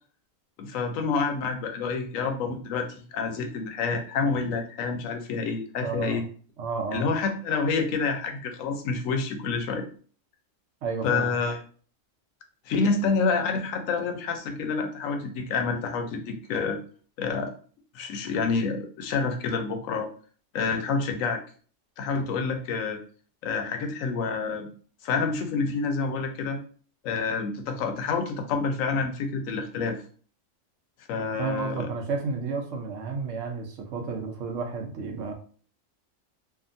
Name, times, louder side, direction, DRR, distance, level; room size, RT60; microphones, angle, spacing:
voice 1, 0.6-6.2 6.9-9.9 11.0-11.6 12.7-16.8 17.2-17.5 17.9-20.1 20.5-21.4 22.0-23.0 23.4-24.7 25.0-26.6 27.0-30.0 31.1-31.9, left 4 dB, 85° left, 5 dB, 1.0 m, -28 dB
voice 2, 5.8-6.2 6.6-7.1 10.8-11.3 31.2-35.3, right 4 dB, 75° right, 3 dB, 1.0 m, -32 dB
2.7 x 2.4 x 2.5 m, 0.42 s
omnidirectional pair, 1.4 m